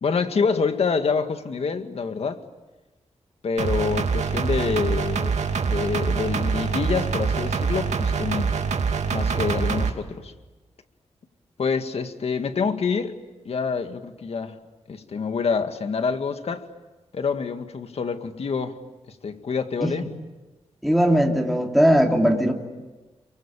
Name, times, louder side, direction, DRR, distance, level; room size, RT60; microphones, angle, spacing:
voice 1, 0.0-2.4 3.4-5.4 5.7-8.5 9.1-10.3 11.6-13.2 13.5-14.6 14.9-16.6 17.1-18.7 19.2-20.1, left 5 dB, 60° left, 8 dB, 2.0 m, -26 dB
sound 1, 3.6-9.9, right 5 dB, 90° right, 2.6 m, -25 dB
voice 2, 20.8-22.5, equal, ahead, 1 dB, 3.0 m, -19 dB
28.5 x 23.5 x 8.9 m, 1.2 s
wide cardioid pair, 115°, 11 cm